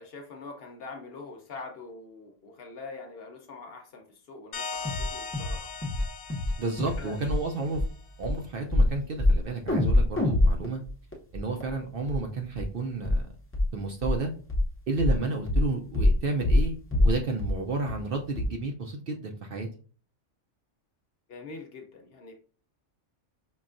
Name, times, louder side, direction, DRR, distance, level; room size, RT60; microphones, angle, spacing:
voice 1, 0.0-5.7 7.0-7.3 21.3-22.3, left 3 dB, 60° left, 3 dB, 0.8 m, -44 dB
sound 1, 4.5-7.9, left 5 dB, 80° left, 1.0 m, -39 dB
sound 2, 4.8-5.1 5.3-5.6 5.8-6.0 6.3-6.5 6.8-7.0 7.3-7.4 7.7-7.9 8.2-8.3 8.7-8.9 9.2-9.4 9.7-11.7 12.1-12.2 12.6-12.7 13.0-13.2 13.5-13.7 14.0-14.2 14.5-14.7 15.0-15.2 15.5-15.7 15.9-16.2 16.4-16.7 16.9-17.1 17.4-17.5 17.9-18.0 18.4-18.5, left 1 dB, 15° left, 0.6 m, -23 dB
voice 2, 6.6-7.8 8.2-10.8 11.3-13.3 13.7-14.3 14.9-19.7, right 3 dB, 60° right, 3 dB, 0.6 m, -31 dB
5.5 x 2.2 x 2.5 m, 0.41 s
omnidirectional pair, 1.3 m